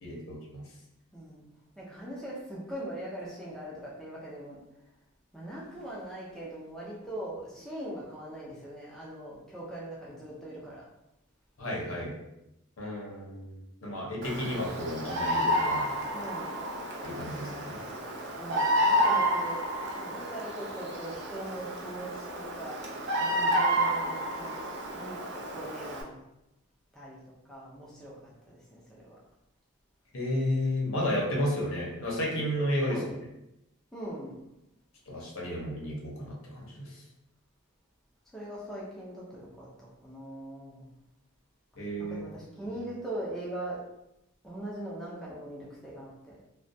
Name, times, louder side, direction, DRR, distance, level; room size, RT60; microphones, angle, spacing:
voice 1, 0.0-0.6 11.6-12.1 12.8-15.9 17.0-17.8 30.1-33.0 35.1-36.8 41.8-42.2, left 1 dB, 65° left, -3 dB, 0.7 m, -32 dB
voice 2, 1.1-1.4 1.8-4.6 5.3-10.8 16.1-16.7 18.4-19.6 19.9-24.6 24.9-26.2 26.9-27.2 27.5-29.2 32.8-33.1 33.9-34.4 38.3-40.9 42.0-43.8 44.4-46.4, right 1 dB, ahead, -6 dB, 0.5 m, -41 dB
Bird vocalization bird call bird song, 14.2-26.0, equal, 55° right, 0.4 m, -30 dB
2.3 x 2.2 x 2.6 m, 0.90 s
head